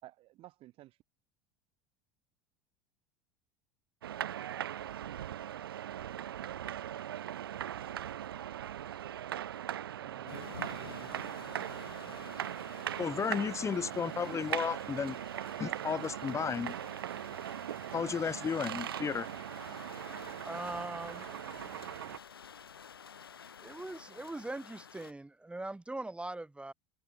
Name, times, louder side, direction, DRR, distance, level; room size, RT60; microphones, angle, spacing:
voice 1, 0.0-1.0 10.0-11.1, right 16 dB, 50° right, 5.6 m, -52 dB
sound 1, 4.0-22.2, right 11 dB, 80° right, 0.7 m, -40 dB
sound 2, 10.3-25.1, left 7 dB, 85° left, 2.6 m, -51 dB
voice 2, 13.0-15.2 15.6-16.7 17.9-19.3, left 6 dB, 25° left, 1.4 m, -33 dB
voice 3, 20.4-21.3 23.6-26.7, right 2 dB, 10° right, 4.9 m, -41 dB
hypercardioid pair, 80°, 12 cm